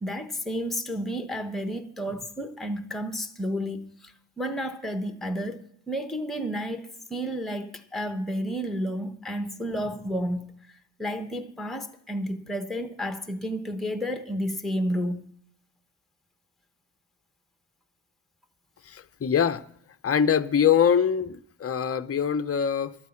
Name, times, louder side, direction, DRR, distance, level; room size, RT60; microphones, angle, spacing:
voice 1, 0.0-15.3, equal, ahead, 1.0 m, -31 dB
voice 2, 18.9-19.6 20.0-22.9, left 8 dB, 30° left, 0.6 m, -23 dB
12.5 x 9.2 x 7.1 m
wide cardioid pair, 95°, 49 cm